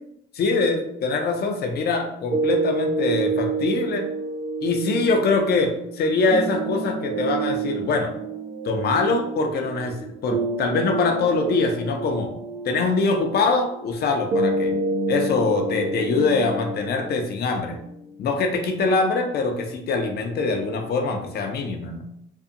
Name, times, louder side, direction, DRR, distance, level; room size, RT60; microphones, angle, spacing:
voice 1, 0.3-4.0 4.6-8.1 8.6-12.3 12.6-14.8 15.1-17.8 18.2-22.0, left 3 dB, 55° left, 4 dB, 0.5 m, -23 dB
sound 1, 2.3-18.3, right 3 dB, 65° right, 0.5 m, -28 dB
2.7 x 2.1 x 2.5 m, 0.77 s
cardioid pair, 90°, 20 cm